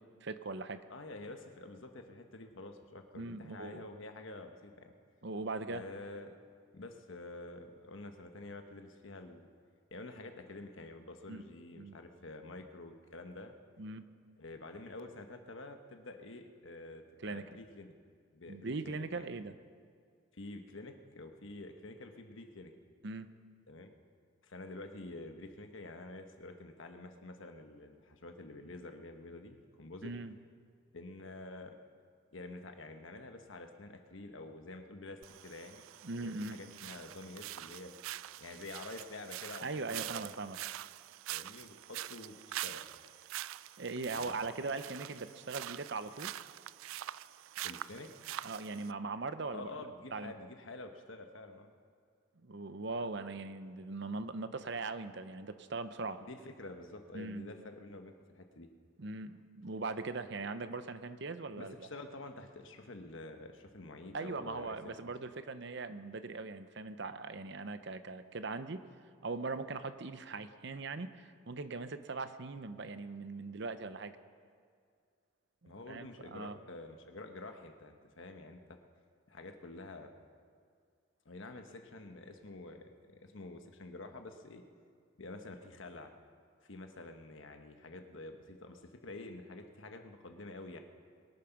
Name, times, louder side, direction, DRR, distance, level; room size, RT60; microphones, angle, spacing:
voice 1, 0.0-0.8 3.1-3.9 5.2-5.8 11.3-11.4 11.8-12.0 13.8-14.0 17.2-17.4 18.5-19.5 23.0-23.3 30.0-30.3 36.0-36.6 39.6-40.6 43.8-46.3 48.4-49.7 50.1-50.3 52.4-56.2 57.1-57.5 59.0-61.9 64.1-68.8 69.2-74.2 75.6-76.6, right 3 dB, 60° right, 11 dB, 0.7 m, -40 dB
voice 2, 0.9-4.9 5.7-6.3 6.7-9.5 9.9-13.5 14.4-17.9 18.3-19.3 20.3-22.7 23.7-23.9 24.4-30.1 30.9-31.7 32.3-35.8 36.2-37.9 38.4-40.3 41.3-42.8 44.1-44.4 47.6-48.1 49.5-51.7 56.2-58.7 61.6-65.0 75.7-78.6 79.3-80.1 81.2-84.6 85.2-86.1 86.6-90.8, left 2 dB, 70° left, 5 dB, 1.2 m, -48 dB
sound 1, 35.2-48.9, right 13 dB, 85° right, 0.3 m, -45 dB
23.0 x 9.0 x 5.9 m, 2.1 s
head